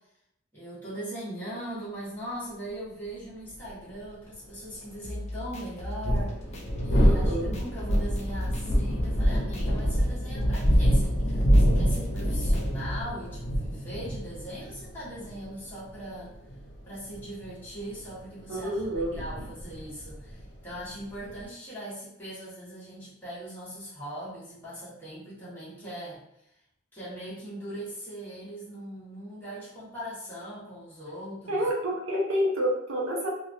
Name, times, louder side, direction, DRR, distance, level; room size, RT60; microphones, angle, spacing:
voice 1, 0.5-6.4 6.8-16.3 16.8-26.2 26.9-31.7, right 1 dB, 10° left, -10 dB, 1.3 m, -40 dB
sound 1, 3.6-3.7 5.8-21.4, equal, 60° left, 0.8 m, -26 dB
sound 2, 5.0-13.0, left 1 dB, 35° left, 0.4 m, -38 dB
voice 2, 7.0-7.5 18.5-19.5 31.5-33.3, equal, 90° right, -2 dB, 0.7 m, -29 dB
3.4 x 2.3 x 2.7 m, 0.80 s
head